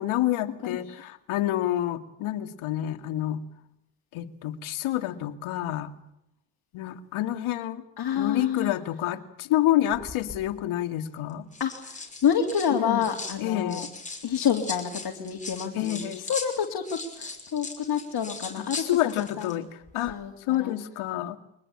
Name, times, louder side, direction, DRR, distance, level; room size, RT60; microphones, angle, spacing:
voice 1, 0.0-3.4 4.1-5.9 6.7-7.8 8.1-11.5 12.7-13.1 13.4-13.9 15.7-16.2 18.6-19.7 19.9-20.2 20.5-21.4, left 13 dB, 70° left, 9 dB, 2.2 m, -28 dB
voice 2, 0.6-1.0 8.0-8.7 11.6-13.9 14.2-16.0 16.3-19.6 20.1-20.7, left 8 dB, 50° left, 1 dB, 3.4 m, -28 dB
sound 1, 9.9-10.4 11.3-13.4 13.7-19.6 19.8-20.1, left 3 dB, 15° left, 5.8 m, -39 dB
24.0 x 20.0 x 8.7 m, 0.80 s
supercardioid pair, 80°, 50 cm